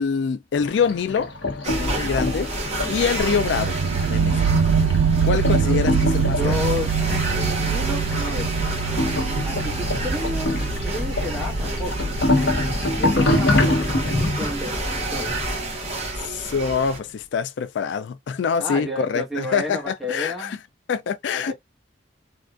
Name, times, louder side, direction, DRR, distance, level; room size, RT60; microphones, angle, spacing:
voice 1, 0.0-1.3 1.6-2.5 2.9-3.8 4.1-4.5 5.2-6.6 16.2-20.6 20.9-21.5, left 6 dB, 75° left, 0.3 m, -25 dB
sound 1, 0.6-16.7, left 2 dB, 90° left, 0.9 m, -27 dB
sound 2, 1.6-17.0, right 1 dB, 35° right, 1.6 m, -29 dB
sound 3, 3.2-13.0, right 6 dB, 75° right, 0.4 m, -24 dB
voice 2, 6.4-8.5 9.4-10.6 10.8-12.1 13.0-13.8 14.2-15.3 18.6-20.6 21.3-21.5, left 2 dB, ahead, 1.3 m, -31 dB
3.7 x 2.4 x 2.4 m
head